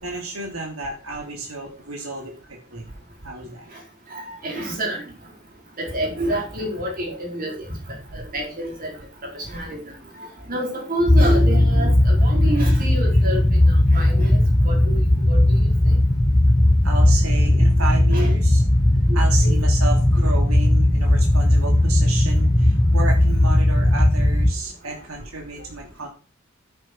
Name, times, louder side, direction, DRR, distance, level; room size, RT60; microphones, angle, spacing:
voice 1, 0.0-2.9 3.2-3.6 7.0-7.2 8.1-8.2 16.8-18.6 19.1-26.1, right 3 dB, 85° right, 1 dB, 3.0 m, -32 dB
voice 2, 4.1-5.0 5.8-7.7 8.1-8.9 9.3-9.8 10.5-14.4 14.6-15.0 15.3-15.6 15.9-16.0 17.4-17.5 18.1-18.3 19.1-19.5, right 1 dB, 45° right, 0 dB, 4.6 m, -28 dB
sound 1, 11.1-24.5, left 1 dB, 15° left, 0.8 m, -17 dB
10.0 x 9.2 x 4.7 m, 0.33 s
head